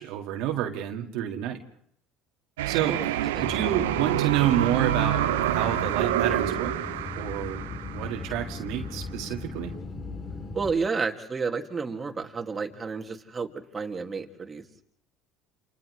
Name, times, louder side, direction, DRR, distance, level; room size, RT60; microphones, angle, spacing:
voice 1, 0.0-1.6 2.7-6.8 7.1-9.7, right 11 dB, 70° right, 3 dB, 1.9 m, -29 dB
sound 1, 2.6-8.5, right 13 dB, 85° right, 0.7 m, -27 dB
sound 2, 3.3-10.7, left 3 dB, 35° left, 4.0 m, -37 dB
Mallet percussion, 5.0-6.8, left 8 dB, 70° left, 2.6 m, -44 dB
voice 2, 10.5-14.6, right 4 dB, 25° right, 3 dB, 2.2 m, -31 dB
29.0 x 28.5 x 3.2 m, 0.66 s
hypercardioid pair, 75°, 0 cm